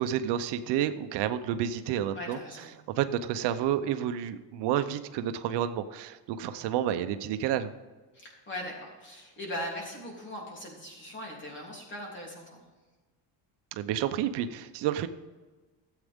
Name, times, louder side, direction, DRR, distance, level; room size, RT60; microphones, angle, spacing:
voice 1, 0.0-2.4 2.9-7.7 13.8-15.1, right 10 dB, 75° right, 10 dB, 0.8 m, -30 dB
voice 2, 2.1-2.8 8.1-12.6, left 1 dB, 25° left, -2 dB, 3.2 m, -40 dB
13.5 x 8.2 x 3.6 m, 1.3 s
cardioid pair, 155°, 42 cm